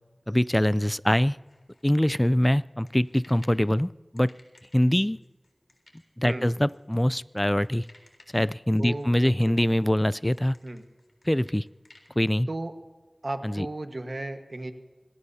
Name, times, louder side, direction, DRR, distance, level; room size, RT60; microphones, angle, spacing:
voice 1, 0.3-1.4 1.8-4.3 4.7-5.2 6.2-7.8 8.3-10.6 11.3-11.7 12.2-12.5 13.4-13.7, equal, 15° left, 19 dB, 0.4 m, -23 dB
sound 1, 1.5-3.7 4.2-12.1, left 2 dB, 80° left, 3.7 m, -58 dB
voice 2, 8.8-9.6 10.6-10.8 12.5-12.7 13.2-14.7, right 2 dB, 65° right, 6 dB, 1.4 m, -35 dB
26.0 x 19.0 x 2.8 m, 1.3 s
wide cardioid pair, 50°, 0 cm